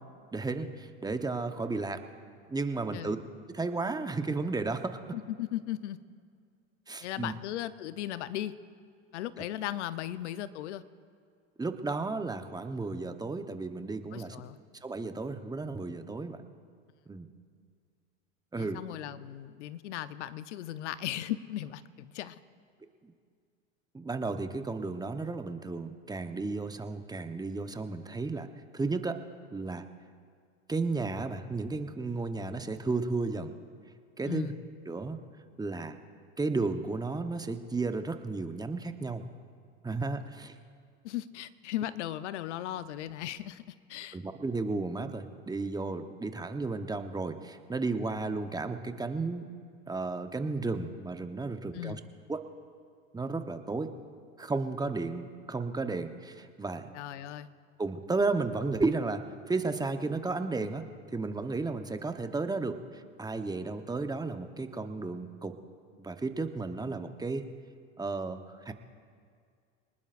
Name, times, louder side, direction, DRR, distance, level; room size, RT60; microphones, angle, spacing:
voice 1, 0.3-2.0 2.5-3.2 3.5-5.0 6.9-7.3 11.6-14.4 14.8-16.4 17.1-17.3 18.5-18.8 23.0-23.1 23.9-28.5 28.7-29.2 29.5-29.8 30.7-33.5 34.2-34.5 34.9-35.2 35.6-36.0 36.4-39.2 39.8-40.5 44.1-49.5 49.9-52.0 52.3-52.4 53.1-53.9 54.4-56.9 57.8-60.8 61.1-65.5 66.0-67.5 68.0-68.4 68.6-68.7, right 3 dB, 10° right, 8 dB, 1.0 m, -33 dB
voice 2, 5.1-6.0 7.0-8.5 9.1-10.8 14.1-14.6 18.6-22.4 34.2-34.6 41.0-43.6 43.9-44.2 51.7-52.0 56.9-57.5, left 13 dB, 75° left, 14 dB, 0.8 m, -37 dB
26.0 x 19.5 x 2.6 m, 2.2 s
hypercardioid pair, 85°, 35 cm